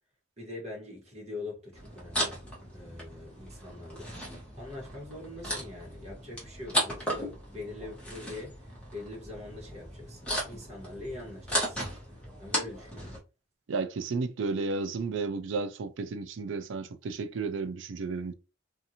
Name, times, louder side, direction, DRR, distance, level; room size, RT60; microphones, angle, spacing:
voice 1, 0.4-2.4 2.7-4.1 4.6-8.5 8.9-10.2 10.5-11.8 12.4-13.1, left 2 dB, 35° right, 1.2 m, -43 dB
sound 1, 1.7-13.2, equal, 5° left, 1.0 m, -36 dB
voice 2, 13.7-18.3, right 4 dB, 65° right, 0.4 m, -33 dB
2.7 x 2.5 x 2.7 m
head